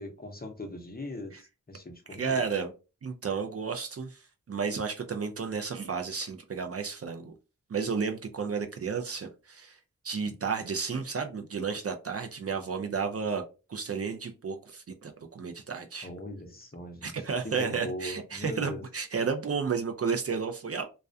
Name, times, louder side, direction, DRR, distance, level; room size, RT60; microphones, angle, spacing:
voice 1, 0.0-2.4 16.0-17.1 17.4-18.8, left 1 dB, 30° left, 3 dB, 0.6 m, -40 dB
voice 2, 2.2-2.7 3.0-7.3 7.7-9.8 10.0-13.4 13.7-16.1 17.0-20.8, right 5 dB, 50° right, 5 dB, 0.4 m, -32 dB
2.3 x 2.1 x 2.5 m, 0.31 s
wide cardioid pair, 65°, 32 cm